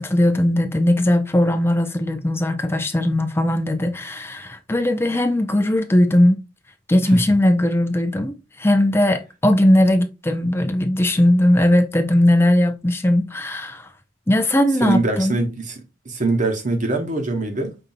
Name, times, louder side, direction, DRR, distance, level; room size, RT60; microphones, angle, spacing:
voice 1, 0.0-6.4 6.9-13.8 14.3-15.4, left 1 dB, 10° left, 0.5 m, -18 dB
voice 2, 14.8-17.8, right 2 dB, 40° right, 1.0 m, -23 dB
5.5 x 2.7 x 2.6 m
head